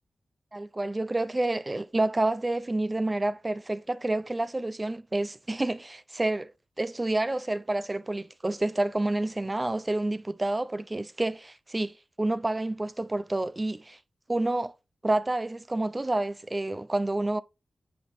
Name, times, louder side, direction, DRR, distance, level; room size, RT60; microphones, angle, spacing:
voice 1, 0.5-6.5 6.8-14.0 14.3-14.7 15.0-17.4, right 2 dB, 25° right, 0.4 m, -29 dB
8.4 x 3.9 x 3.0 m
cardioid pair, 45°, 0 cm